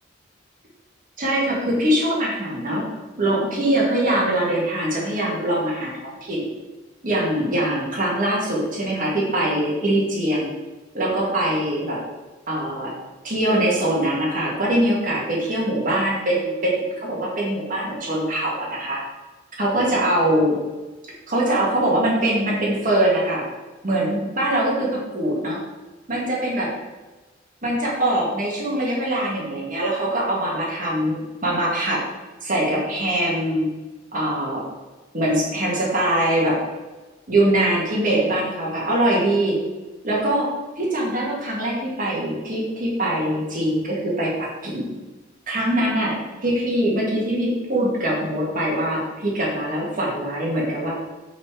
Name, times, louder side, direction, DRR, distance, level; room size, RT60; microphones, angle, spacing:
voice 1, 1.2-2.9 3.2-6.4 7.0-10.5 10.9-12.0 12.5-12.9 13.2-19.0 19.6-20.6 21.3-23.4 23.8-25.6 26.1-26.7 27.6-32.0 32.4-33.7 34.1-34.6 35.1-36.6 37.3-39.6 40.0-40.5 40.8-44.9 45.5-50.9, right 1 dB, 45° right, -4 dB, 2.0 m, -22 dB
5.6 x 4.3 x 4.8 m, 1.2 s
head